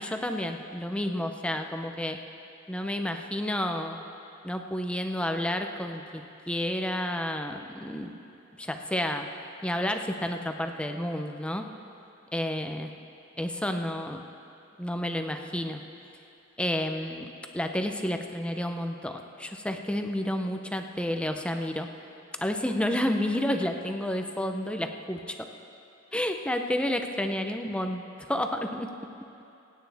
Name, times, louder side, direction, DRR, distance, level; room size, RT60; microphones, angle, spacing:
voice 1, 0.0-2.2 2.7-4.0 4.4-8.1 8.6-9.3 9.6-11.6 12.3-12.9 13.4-14.2 14.8-15.8 16.6-17.3 17.5-21.9 22.4-25.3 26.1-28.9, left 1 dB, 5° left, 5 dB, 0.6 m, -30 dB
26.0 x 9.3 x 3.5 m, 2.7 s
head